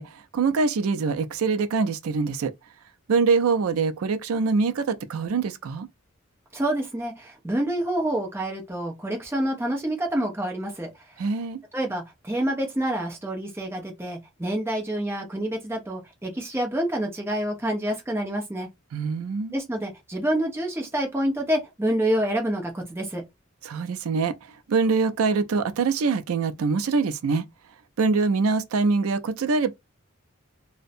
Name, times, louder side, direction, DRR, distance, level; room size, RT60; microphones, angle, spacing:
voice 1, 0.0-2.5 3.1-5.9 11.2-11.6 18.9-19.5 23.6-24.3 24.7-27.5 28.0-29.7, right 4 dB, 75° right, 0.4 m, -24 dB
voice 2, 6.5-11.3 11.7-18.7 19.5-23.2, right 1 dB, 10° right, 0.6 m, -27 dB
2.5 x 2.1 x 2.5 m
head